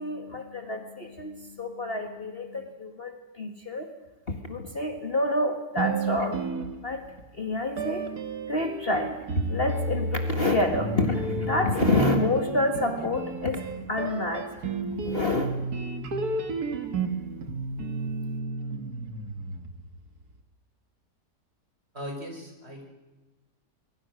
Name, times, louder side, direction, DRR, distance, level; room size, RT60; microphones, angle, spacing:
voice 1, 0.0-3.9 4.3-6.4 6.8-7.0 7.3-8.1 8.5-9.1 9.4-13.6 13.9-14.5 14.9-15.5, left 2 dB, 35° left, 5 dB, 1.9 m, -28 dB
sound 1, 5.8-7.2 7.8-20.0, right 3 dB, 60° right, 2.2 m, -32 dB
voice 2, 21.9-22.9, equal, 35° right, 2 dB, 5.4 m, -38 dB
25.5 x 23.0 x 6.3 m, 1.2 s
omnidirectional pair, 1.8 m